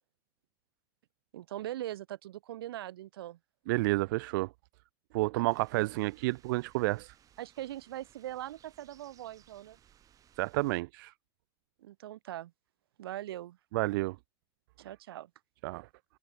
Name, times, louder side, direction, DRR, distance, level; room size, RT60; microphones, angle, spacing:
voice 1, 1.3-3.4 5.3-5.9 7.4-9.8 11.8-12.5 13.0-13.6 14.8-15.3, right 13 dB, 85° right, 5.4 m, -41 dB
voice 2, 3.7-4.5 5.1-7.1 10.4-11.1 13.7-14.2 15.6-15.9, right 22 dB, 65° right, 0.5 m, -30 dB
sound 1, 5.5-10.8, right 10 dB, 30° right, 7.4 m, -63 dB
open air
supercardioid pair, 135°, 12 cm